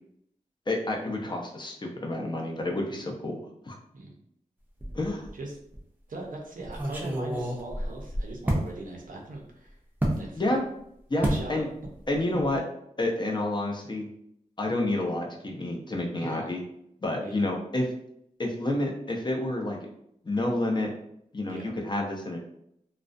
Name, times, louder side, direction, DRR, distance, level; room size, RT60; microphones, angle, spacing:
voice 1, 0.7-3.4 3.6-3.7 4.9-5.3 10.4-10.6 11.1-11.7 12.1-12.6 13.0-14.1 14.6-16.6 17.0-17.9 18.4-19.8 20.2-20.9 21.3-22.4, left 1 dB, 35° left, 1 dB, 0.5 m, -29 dB
sound 1, 4.8-5.4 5.7-5.8 6.6-8.7 10.0-10.2 11.2-11.5 11.8-12.1 12.4-12.6, right 1 dB, 15° right, 0.5 m, -29 dB
voice 2, 6.1-9.8 10.2-10.5 11.2-11.7 13.8-13.9 16.2-16.5 17.2-17.4 21.4-21.7, right 2 dB, 85° right, 0 dB, 0.6 m, -40 dB
2.3 x 2.1 x 2.5 m, 0.73 s
wide cardioid pair, 75°, 14 cm